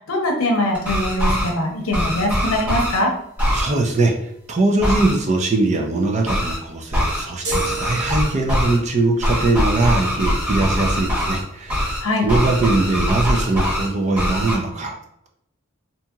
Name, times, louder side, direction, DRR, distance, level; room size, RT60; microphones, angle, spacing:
voice 1, 0.0-3.1 12.0-12.3, left 1 dB, 85° left, 2 dB, 0.7 m, -22 dB
sound 1, 0.7-1.5 1.9-3.0 3.4-3.7 4.8-5.1 6.3-6.6 6.9-7.2 7.5-8.8 9.2-11.4 11.7-12.0 12.3-13.9 14.2-14.5, equal, 10° right, 1.0 m, -22 dB
voice 2, 3.5-4.1 4.5-11.9 12.2-15.0, right 2 dB, 35° right, 2 dB, 0.4 m, -21 dB
sound 2, 7.4-8.8, right 3 dB, 85° right, 0.8 m, -30 dB
2.8 x 2.7 x 2.3 m, 0.76 s
head